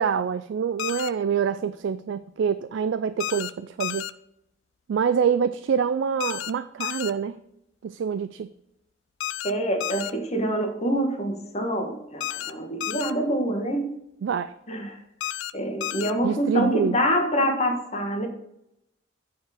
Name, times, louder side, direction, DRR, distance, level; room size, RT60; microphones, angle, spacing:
voice 1, 0.0-4.1 4.9-7.4 7.8-8.5 14.2-14.5 16.2-17.0, right 7 dB, 65° right, 12 dB, 0.3 m, -26 dB
sound 1, 0.8-1.1 3.2-3.5 3.8-4.1 6.2-6.5 6.8-7.1 9.2-9.5 9.8-10.1 12.2-12.5 12.8-13.1 15.2-15.5 15.8-16.1, left 13 dB, 70° left, 0.4 m, -31 dB
voice 2, 9.4-13.9 14.7-15.0 15.5-18.3, equal, 35° left, 4 dB, 1.4 m, -26 dB
9.0 x 4.6 x 4.9 m, 0.81 s
head